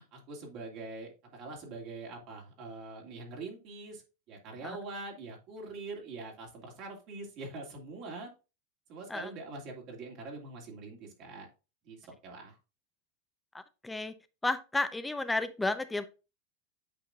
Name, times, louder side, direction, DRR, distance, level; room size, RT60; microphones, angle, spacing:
voice 1, 0.0-4.0 4.3-8.3 8.9-11.5 11.8-12.6, right 3 dB, 55° right, 0 dB, 2.6 m, -44 dB
voice 2, 13.5-14.1 14.4-16.1, left 2 dB, 10° left, 10 dB, 0.8 m, -32 dB
8.6 x 5.1 x 2.5 m, 0.30 s
hypercardioid pair, 105°, 0 cm